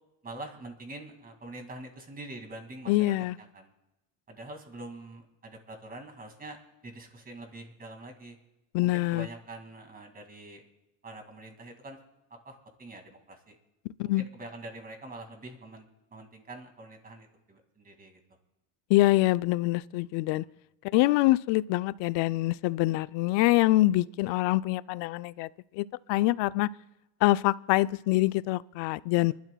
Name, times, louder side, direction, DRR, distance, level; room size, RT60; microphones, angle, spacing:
voice 1, 0.2-3.7 4.3-6.6 6.8-8.4 8.9-10.6 11.0-12.0 12.4-13.6 14.2-18.2 20.3-20.5, right 2 dB, 20° right, 2.2 m, -45 dB
voice 2, 2.9-3.3 8.7-9.3 14.0-14.2 18.9-20.4 20.9-25.5 25.7-26.7 27.2-29.3, left 18 dB, 80° left, 0.5 m, -25 dB
28.5 x 12.0 x 2.3 m
cardioid pair, 130°, 42 cm